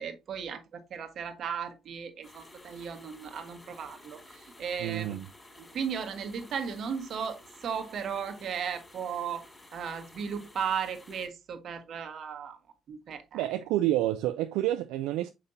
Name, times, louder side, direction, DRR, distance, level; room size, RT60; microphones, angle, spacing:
voice 1, 0.0-5.2 5.6-9.5 9.7-12.6 12.9-13.5, right 7 dB, 55° right, 1.4 m, -36 dB
sound 1, 2.2-11.3, left 2 dB, 15° left, 3.5 m, -53 dB
voice 2, 4.8-5.3 13.3-15.3, right 14 dB, 75° right, 0.4 m, -29 dB
6.4 x 5.7 x 2.6 m
hypercardioid pair, 55°, 0 cm